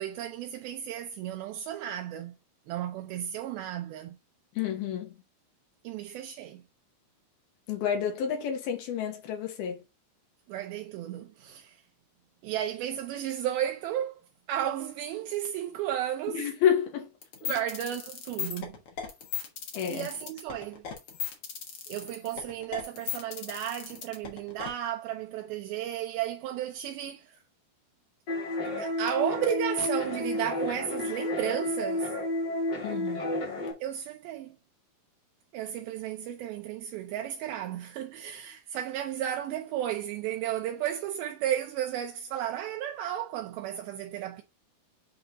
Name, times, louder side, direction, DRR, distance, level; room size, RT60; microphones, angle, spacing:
voice 1, 0.0-2.3 2.7-4.2 5.8-6.6 10.5-11.8 12.4-14.2 14.5-16.4 17.4-18.8 19.9-20.8 21.9-27.4 28.8-32.1 33.8-34.6 35.5-44.4, right 11 dB, 80° right, 2.3 m, -33 dB
voice 2, 4.6-5.1 7.7-9.8 16.3-17.1 19.7-20.1 32.8-33.4, left 8 dB, 75° left, 3.1 m, -29 dB
sound 1, 17.2-24.7, left 8 dB, 60° left, 1.6 m, -36 dB
sound 2, 28.3-33.7, left 1 dB, 35° left, 1.8 m, -31 dB
7.8 x 3.2 x 4.0 m
omnidirectional pair, 4.6 m